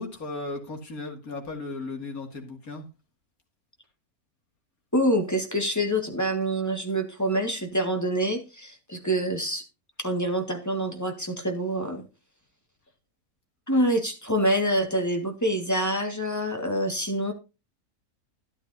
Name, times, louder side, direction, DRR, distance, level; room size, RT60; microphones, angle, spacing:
voice 1, 0.0-2.9, left 3 dB, 75° left, 3 dB, 2.7 m, -36 dB
voice 2, 4.9-9.6 10.0-12.0 13.7-17.3, right 1 dB, 10° left, 4 dB, 1.7 m, -26 dB
12.5 x 11.0 x 2.7 m, 0.29 s
omnidirectional pair, 1.5 m